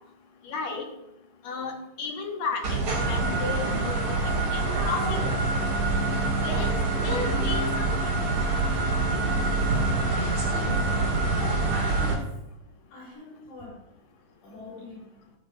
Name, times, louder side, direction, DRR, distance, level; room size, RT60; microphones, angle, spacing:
voice 1, 0.4-0.9 1.4-5.4 6.4-6.7 7.0-8.2, left 4 dB, 65° left, 2 dB, 2.5 m, -34 dB
sound 1, 2.6-12.1, right 3 dB, 70° right, 3.3 m, -25 dB
voice 2, 11.5-12.3 12.9-13.8 14.4-15.1, left 2 dB, 80° left, -9 dB, 5.4 m, -44 dB
13.5 x 10.5 x 2.5 m, 0.87 s
omnidirectional pair, 3.5 m